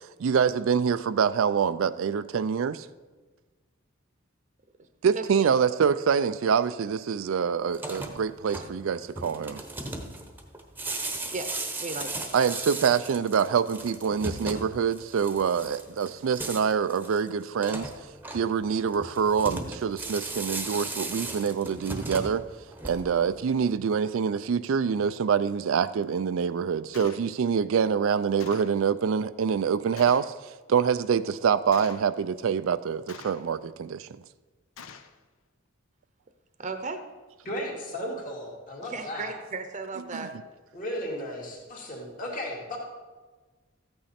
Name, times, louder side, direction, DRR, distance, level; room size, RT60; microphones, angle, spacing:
voice 1, 0.2-2.9 5.0-9.6 12.3-17.9 18.3-22.4 22.8-30.3 30.7-34.1 40.1-40.3, right 6 dB, 75° right, 13 dB, 0.4 m, -25 dB
voice 2, 5.1-5.5 11.3-12.3 36.6-37.0 38.8-40.3, right 3 dB, 35° right, 7 dB, 0.8 m, -36 dB
sound 1, 7.7-23.3, right 2 dB, 10° right, 0.9 m, -37 dB
Gunshot gunfire, 26.9-27.3 28.4-28.8 30.0-30.4 31.7-32.1 33.1-33.6 34.8-35.2, left 6 dB, 85° left, 0.7 m, -46 dB
voice 3, 37.4-39.3 40.7-42.8, equal, 40° left, -2 dB, 2.2 m, -35 dB
14.0 x 8.8 x 4.3 m, 1.3 s
head